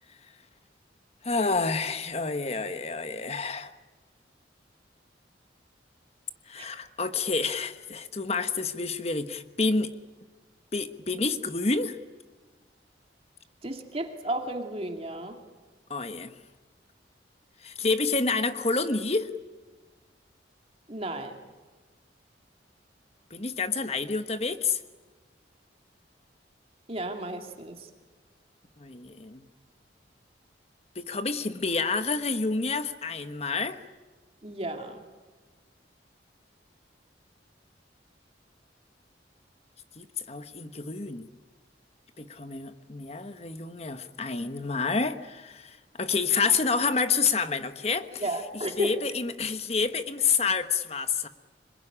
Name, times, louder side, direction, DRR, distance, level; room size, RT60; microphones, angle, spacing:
voice 1, 1.2-3.7 6.5-9.9 10.7-12.0 15.9-16.3 17.6-19.3 23.3-24.8 28.8-29.4 30.9-33.8 40.0-41.3 42.2-48.2 48.8-51.3, left 4 dB, 35° left, 10 dB, 1.3 m, -28 dB
voice 2, 13.6-15.4 20.9-21.4 26.9-27.9 34.4-35.0 48.2-48.9, right 1 dB, 35° right, 4 dB, 2.3 m, -33 dB
26.5 x 20.5 x 10.0 m, 1.4 s
head